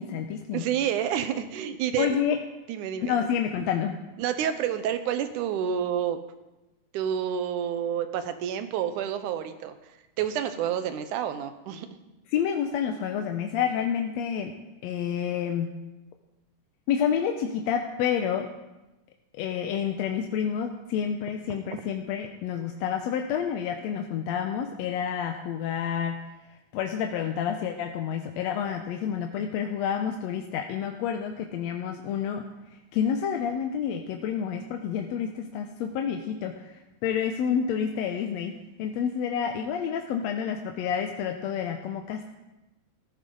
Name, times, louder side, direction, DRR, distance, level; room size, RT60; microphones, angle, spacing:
voice 1, 0.0-0.6 2.0-2.4 3.0-4.0 12.3-14.5 14.8-15.7 16.9-18.5 19.3-26.2 26.7-32.4 32.7-38.5 38.8-42.3, left 8 dB, 70° left, 4 dB, 1.8 m, -29 dB
voice 2, 0.5-2.1 2.7-3.2 4.2-6.2 6.9-9.8 10.2-11.9 21.5-21.6, right 9 dB, 85° right, 10 dB, 2.4 m, -29 dB
14.5 x 14.0 x 3.9 m, 1.0 s
omnidirectional pair, 3.5 m